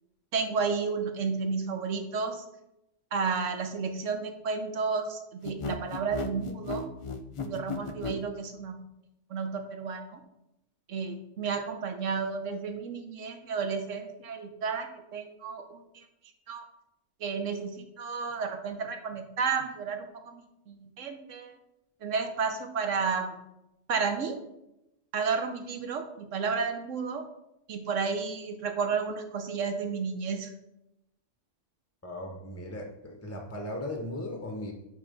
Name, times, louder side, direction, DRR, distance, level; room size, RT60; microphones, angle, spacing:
voice 1, 0.3-2.4 3.1-6.8 7.4-8.8 9.3-10.2 10.9-16.0 16.5-16.6 17.2-21.6 22.0-23.4 23.9-24.4 25.1-27.2 27.7-30.5, right 5 dB, 85° right, 6 dB, 1.2 m, -32 dB
sound 1, 5.4-8.2, left 4 dB, 55° left, 0.3 m, -35 dB
voice 2, 32.0-34.7, left 1 dB, 15° left, 2 dB, 0.7 m, -37 dB
9.0 x 3.4 x 5.2 m, 0.87 s
omnidirectional pair, 1.3 m